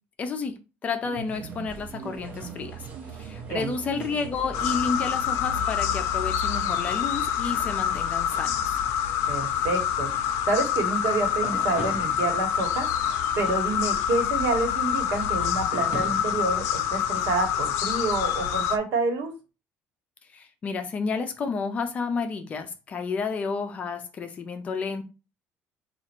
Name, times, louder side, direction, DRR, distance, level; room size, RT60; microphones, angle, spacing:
voice 1, 0.2-0.5 0.8-2.8 3.2-8.7 20.3-25.0, left 5 dB, 30° left, 0.5 m, -31 dB
sound 1, 1.0-7.7, right 7 dB, 50° right, 0.5 m, -42 dB
sound 2, 1.3-17.3, right 1 dB, 35° right, 1.3 m, -45 dB
sound 3, 4.5-18.8, left 9 dB, 75° left, 0.5 m, -26 dB
voice 2, 9.3-12.9 13.4-19.3, right 3 dB, 65° right, 1.3 m, -28 dB
4.1 x 2.5 x 4.4 m
cardioid pair, 155°, 5 cm